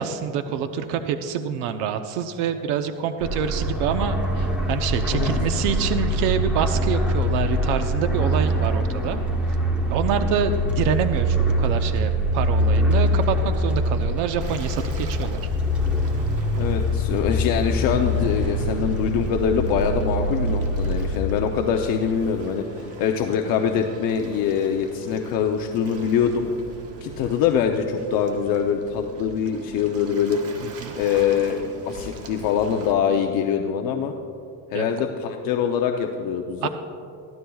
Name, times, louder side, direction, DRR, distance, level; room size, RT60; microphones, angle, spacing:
voice 1, 0.0-9.2 9.9-15.4 30.8-30.9 34.7-34.9 36.6-36.7, right 8 dB, 90° right, 7 dB, 0.8 m, -26 dB
sound 1, 3.2-21.2, equal, 5° right, 1.0 m, -24 dB
Waves surf, 14.4-32.9, right 2 dB, 35° right, 1.2 m, -42 dB
voice 2, 16.6-26.5 27.0-30.4 30.9-34.1 34.7-36.7, left 7 dB, 50° left, 3 dB, 0.7 m, -24 dB
23.0 x 14.5 x 2.3 m, 2.6 s
cardioid pair, 170°, 44 cm